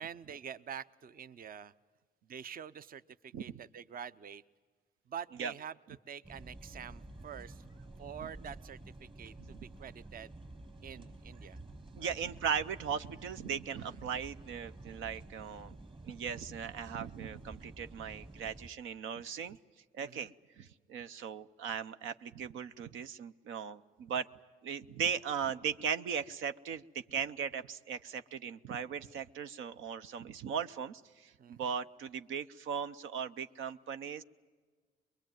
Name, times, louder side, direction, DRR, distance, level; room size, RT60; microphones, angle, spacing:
voice 1, 0.0-1.7 2.2-4.4 5.1-5.7 6.1-7.6 8.0-10.3 10.8-11.6 12.0-12.2 13.8-14.0 20.0-20.3 31.4-31.8, right 8 dB, 45° right, 15 dB, 0.7 m, -46 dB
sound 1, 6.2-18.7, right 2 dB, 25° right, 1.4 m, -51 dB
voice 2, 11.9-15.8 16.0-19.6 19.9-20.3 20.6-24.3 24.6-34.2, right 7 dB, 85° right, 11 dB, 0.7 m, -38 dB
23.0 x 22.5 x 9.2 m, 1.4 s
cardioid pair, 90°, 20 cm